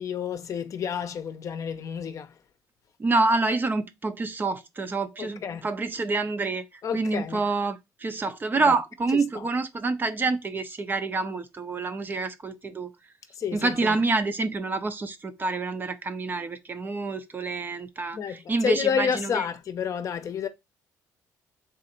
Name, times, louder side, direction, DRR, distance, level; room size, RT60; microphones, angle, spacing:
voice 1, 0.0-2.4 5.2-5.7 6.8-7.4 8.7-8.8 9.3-9.5 13.4-14.0 18.1-20.5, left 7 dB, 50° left, 0.7 m, -30 dB
voice 2, 3.0-6.7 6.9-12.9 13.5-19.4, right 3 dB, 25° right, 0.6 m, -27 dB
3.7 x 2.5 x 4.2 m
cardioid pair, 100°, 7 cm